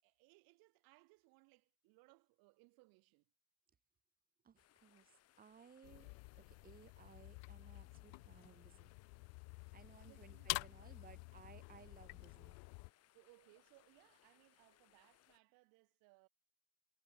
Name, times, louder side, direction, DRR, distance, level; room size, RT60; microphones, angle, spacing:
voice 1, 0.0-3.3 10.1-10.6 13.1-16.3, right 27 dB, 60° right, 5.7 m, -68 dB
voice 2, 4.4-8.9 9.7-12.6, right 7 dB, 20° right, 3.6 m, -62 dB
sound 1, 4.6-15.4, left 13 dB, 35° left, 3.1 m, -72 dB
sound 2, 5.8-12.9, left 40 dB or more, 60° left, 1.2 m, -49 dB
cardioid pair, 150°, 41 cm